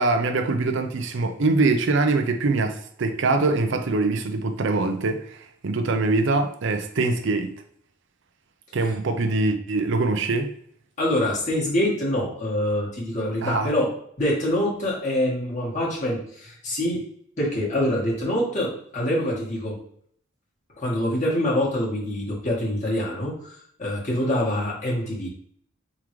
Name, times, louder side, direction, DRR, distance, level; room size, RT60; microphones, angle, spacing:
voice 1, 0.0-7.5 8.7-10.5 13.4-13.7, right 3 dB, 65° right, 0.5 m, -23 dB
voice 2, 11.0-13.9 14.2-17.0 17.4-19.8 20.8-25.3, left 1 dB, 40° left, 1.6 m, -25 dB
4.6 x 3.7 x 3.1 m
head